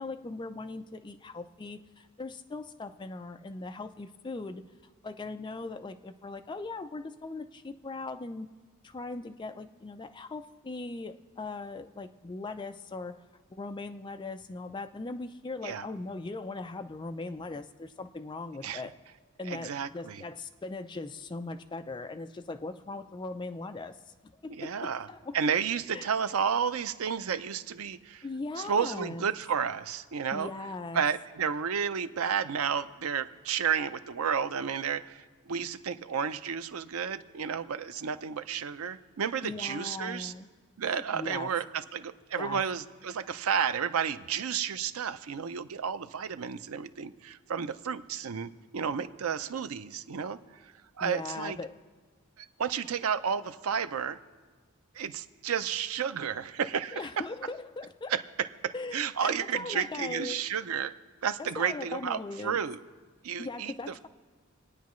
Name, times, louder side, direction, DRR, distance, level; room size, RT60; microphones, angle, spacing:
voice 1, 0.0-4.6 5.0-8.5 8.8-13.2 13.5-18.9 19.4-24.0 24.2-25.4 25.9-26.1 28.2-29.3 30.3-31.0 39.4-40.5 40.9-41.5 42.4-42.6 51.0-51.8 56.9-58.1 58.7-60.4 61.4-62.6 63.4-64.1, left 3 dB, 20° left, 7 dB, 0.4 m, -39 dB
voice 2, 19.5-20.2 24.6-25.1 25.3-28.2 28.6-30.5 30.9-40.3 40.8-51.6 52.4-54.2 54.9-57.1 58.1-61.0 61.2-62.8 63.2-64.1, right 7 dB, 80° right, 12 dB, 0.5 m, -32 dB
27.5 x 9.3 x 3.1 m, 1.4 s
head